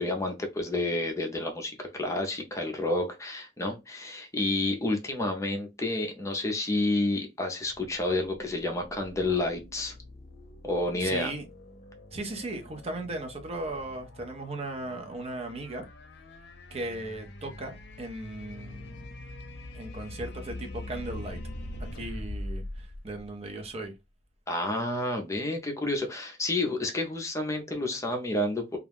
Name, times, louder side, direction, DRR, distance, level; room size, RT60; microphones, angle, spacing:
voice 1, 0.0-9.9 10.6-11.3 24.5-28.8, left 2 dB, 15° left, 0.5 m, -30 dB
sound 1, 7.6-23.8, left 1 dB, 65° left, 0.6 m, -43 dB
voice 2, 11.0-11.5 12.1-15.9 16.7-19.2 19.7-21.4 21.9-23.9, right 2 dB, 35° right, 0.6 m, -37 dB
2.4 x 2.1 x 3.3 m
head